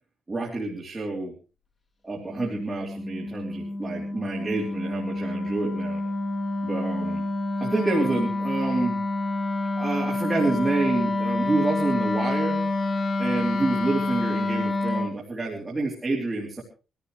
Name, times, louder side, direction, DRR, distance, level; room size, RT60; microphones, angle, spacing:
voice 1, 0.3-1.3 2.0-6.0 6.6-7.2 7.6-9.0 9.7-12.6 13.2-16.6, right 3 dB, 15° right, -2 dB, 3.1 m, -28 dB
Wind instrument woodwind instrument, 2.2-15.2, left 2 dB, 30° left, 2.0 m, -28 dB
23.5 x 14.0 x 3.2 m, 0.33 s
wide cardioid pair, 175°, 0 cm